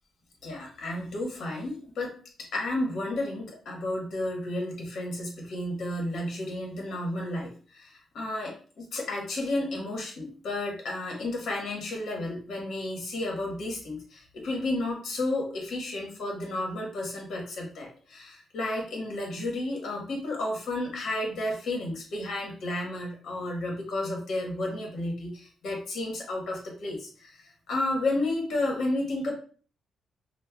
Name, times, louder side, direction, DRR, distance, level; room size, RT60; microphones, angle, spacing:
voice 1, 0.4-2.1 2.4-29.3, left 1 dB, 65° left, -1 dB, 1.2 m, -32 dB
5.3 x 2.1 x 2.2 m, 0.42 s
wide cardioid pair, 155°, 0 cm